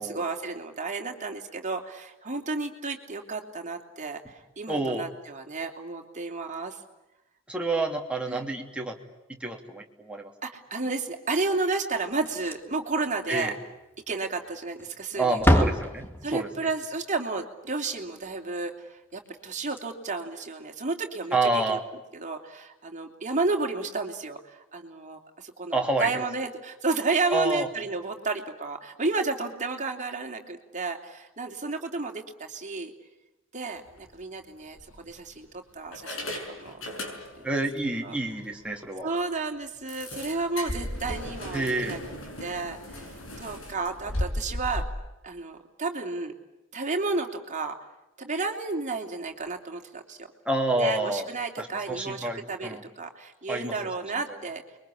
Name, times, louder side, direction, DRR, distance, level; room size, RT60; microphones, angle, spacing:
voice 1, 0.0-6.8 8.3-8.4 10.4-13.5 14.1-15.6 16.2-21.8 22.1-32.9 33.5-36.9 37.4-37.5 38.0-38.1 38.7-42.0 42.4-44.9 45.2-46.3 46.7-47.8 48.2-50.3 50.8-54.6, right 3 dB, 35° right, 3 dB, 3.2 m, -32 dB
voice 2, 4.7-5.1 7.5-9.0 9.3-10.3 13.3-13.5 15.1-16.0 16.3-16.5 21.3-21.8 25.7-26.2 27.3-27.7 37.4-39.1 41.5-42.0 50.4-52.8 53.5-53.7, right 2 dB, 5° right, 1 dB, 3.0 m, -28 dB
Slam, 12.2-12.9 13.2-13.3 13.7-13.8 14.7-15.0 15.3-16.6 19.3-19.4 19.6-19.8 21.3-21.5, equal, 10° left, 1.9 m, -26 dB
sound 1, 33.9-34.1 34.8-35.4 35.9-37.6 37.9-38.0 38.4-38.5 38.9-39.0 39.9-44.8, left 1 dB, 75° left, 6.3 m, -36 dB
29.5 x 23.0 x 8.7 m, 0.95 s
head